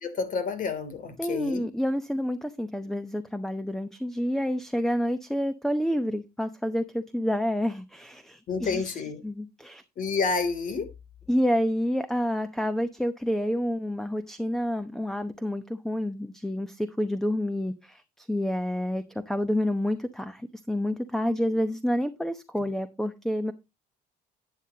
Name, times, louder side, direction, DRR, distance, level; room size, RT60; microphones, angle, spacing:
voice 1, 0.0-1.7 8.5-9.2 10.0-10.9, left 4 dB, 55° left, 3.0 m, -29 dB
voice 2, 1.2-8.9 9.2-9.8 11.3-23.5, equal, ahead, 0.9 m, -28 dB
11.0 x 9.5 x 2.9 m
cardioid pair, 110°, 17 cm